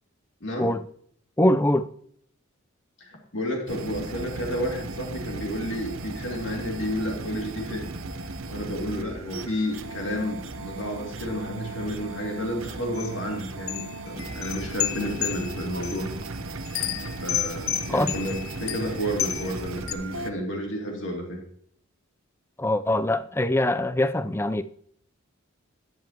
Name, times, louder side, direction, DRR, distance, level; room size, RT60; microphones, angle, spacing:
voice 1, 1.4-1.9 17.9-18.1 22.6-24.6, left 1 dB, 10° left, 0.4 m, -23 dB
voice 2, 3.0-7.9 8.5-16.1 17.2-21.4, equal, 60° left, 2.7 m, -31 dB
sound 1, 3.7-20.3, right 3 dB, 70° right, 0.9 m, -36 dB
sound 2, 12.9-13.1 13.7-16.0 16.6-19.5 19.9-20.0, left 12 dB, 80° left, 0.6 m, -31 dB
12.5 x 9.5 x 2.9 m
head